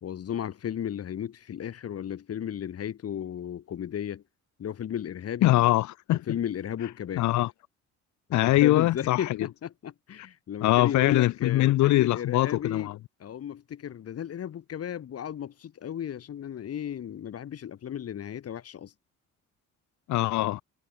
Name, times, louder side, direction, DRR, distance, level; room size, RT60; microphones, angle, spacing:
voice 1, 0.0-4.2 4.6-5.5 6.3-7.3 8.3-12.9 13.2-18.9, left 9 dB, 55° left, 1.4 m, -34 dB
voice 2, 5.4-6.2 7.2-7.5 8.3-9.2 10.6-13.0 20.1-20.6, left 16 dB, 70° left, 0.6 m, -22 dB
cardioid pair, 90°, 30 cm